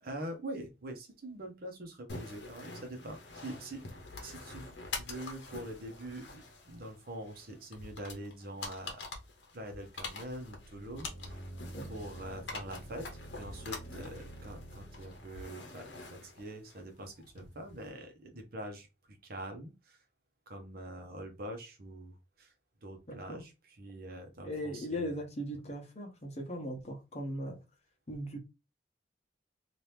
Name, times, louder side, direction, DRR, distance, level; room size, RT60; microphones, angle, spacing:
voice 1, 0.0-3.8 4.2-4.7 5.0-9.0 9.5-11.5 11.9-13.1 13.4-18.9 19.2-20.0 20.5-22.5 22.8-23.5 23.8-25.1, right 1 dB, 55° right, 0.8 m, -44 dB
sound 1, 2.1-17.9, left 3 dB, 65° left, 0.9 m, -46 dB
sound 2, 10.3-15.3, right 1 dB, 20° left, 1.2 m, -48 dB
voice 2, 23.1-23.4 24.4-27.6 28.1-28.4, equal, 35° left, 0.9 m, -38 dB
2.9 x 2.5 x 3.3 m
head